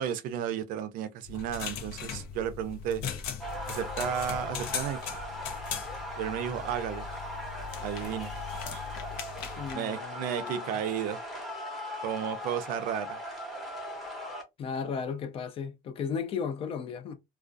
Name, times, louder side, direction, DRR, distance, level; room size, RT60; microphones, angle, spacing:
voice 1, 0.0-3.0 3.6-5.0 6.2-7.1 7.8-8.3 9.7-11.2 12.0-13.2, right 9 dB, 55° right, 0.4 m, -33 dB
sound 1, 1.2-9.7, left 7 dB, 75° left, 0.7 m, -39 dB
sound 2, 3.4-14.4, left 1 dB, ahead, 0.8 m, -39 dB
voice 2, 9.6-10.8 14.6-17.2, left 6 dB, 35° left, 0.4 m, -35 dB
2.3 x 2.2 x 2.5 m
cardioid pair, 150°, 17 cm